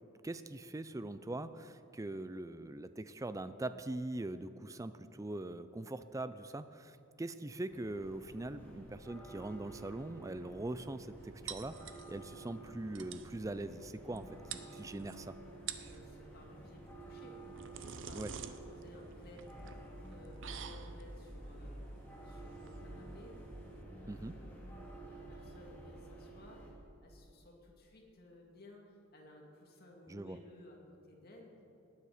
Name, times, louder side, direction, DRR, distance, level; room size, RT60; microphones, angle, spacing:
voice 1, 0.2-14.4 14.8-15.3 18.1-18.3 24.1-24.4 30.1-30.4, right 2 dB, 15° right, 12 dB, 0.4 m, -42 dB
sound 1, 7.7-26.7, right 2 dB, 10° left, 2.6 m, -50 dB
sound 2, 11.5-12.4 12.7-12.8 13.0-13.3 14.2-14.3 14.5-15.2 15.5-16.0 17.2-23.8, right 8 dB, 60° right, 0.7 m, -48 dB
voice 2, 15.8-17.4 17.7-19.5 20.1-21.8 22.2-23.4 24.0-26.6 27.0-31.5, left 1 dB, 45° left, 0 dB, 2.2 m, -57 dB
18.5 x 9.5 x 5.0 m, 2.8 s
head